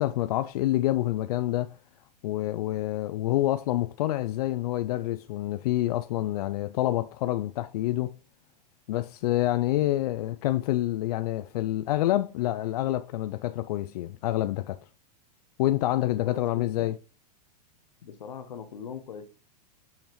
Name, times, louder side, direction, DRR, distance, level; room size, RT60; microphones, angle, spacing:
voice 1, 0.0-1.8 2.2-8.1 8.9-14.8 15.6-17.0, left 15 dB, 65° left, 0.4 m, -27 dB
voice 2, 16.0-16.9 18.0-19.3, left 7 dB, 90° left, 1.1 m, -41 dB
7.0 x 5.8 x 3.1 m
hypercardioid pair, 125°, 21 cm